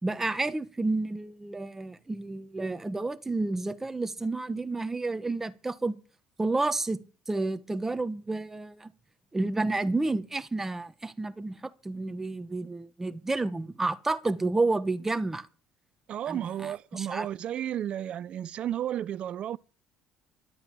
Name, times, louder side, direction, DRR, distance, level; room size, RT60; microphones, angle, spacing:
voice 1, 0.0-6.0 6.4-7.0 7.3-8.9 9.3-15.5 16.3-17.3, right 2 dB, 15° right, 1.2 m, -30 dB
voice 2, 16.1-19.6, right 11 dB, 55° right, 0.7 m, -33 dB
12.5 x 8.5 x 7.6 m
supercardioid pair, 95°, 2 cm